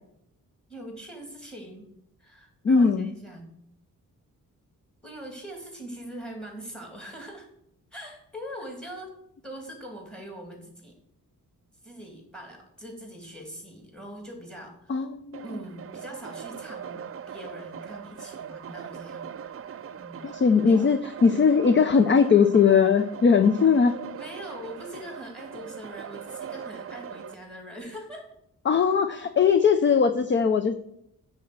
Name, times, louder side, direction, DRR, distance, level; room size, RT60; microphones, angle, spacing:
voice 1, 0.7-1.9 2.2-3.6 5.0-7.5 7.9-9.1 9.4-11.0 11.8-15.1 15.4-19.3 20.0-20.3 20.7-20.9 24.2-28.3, equal, ahead, 2 dB, 2.5 m, -42 dB
voice 2, 2.6-3.1 14.9-15.4 20.2-23.9 28.7-30.7, left 6 dB, 35° left, 9 dB, 0.5 m, -20 dB
sound 1, 15.3-27.3, right 8 dB, 40° right, 0.5 m, -40 dB
9.8 x 4.4 x 7.7 m, 0.76 s
wide cardioid pair, 155°, 34 cm